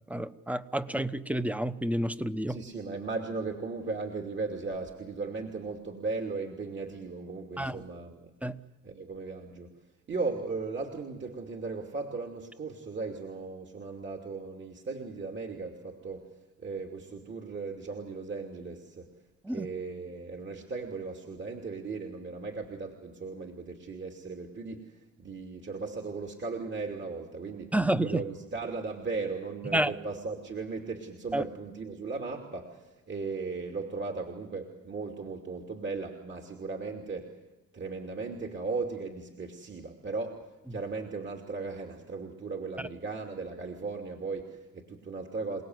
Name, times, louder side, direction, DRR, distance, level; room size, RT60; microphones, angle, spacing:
voice 1, 0.1-2.6 7.6-7.8 8.4-8.6 19.4-19.7 27.7-28.2 29.7-29.9 31.3-31.4, right 1 dB, 5° right, 12 dB, 1.1 m, -29 dB
voice 2, 2.5-8.3 8.8-9.7 10.1-19.1 19.5-37.4 37.7-45.6, right 4 dB, 40° right, 2 dB, 2.8 m, -37 dB
28.5 x 18.5 x 8.0 m, 1.1 s
cardioid pair, 90°, 30 cm